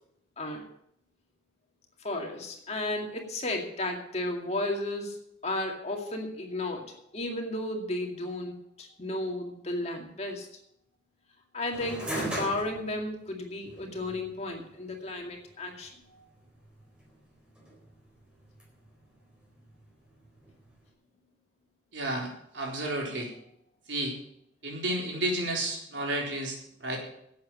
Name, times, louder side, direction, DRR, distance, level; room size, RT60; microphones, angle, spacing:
voice 1, 0.4-0.7 2.0-10.5 11.5-16.2, left 1 dB, 35° left, 2 dB, 2.3 m, -34 dB
sound 1, 11.7-20.9, right 1 dB, 5° right, 4.3 m, -41 dB
voice 2, 21.9-23.3 23.9-24.2 24.6-27.0, right 1 dB, 80° right, -1 dB, 4.2 m, -32 dB
11.5 x 8.5 x 8.6 m, 0.74 s
head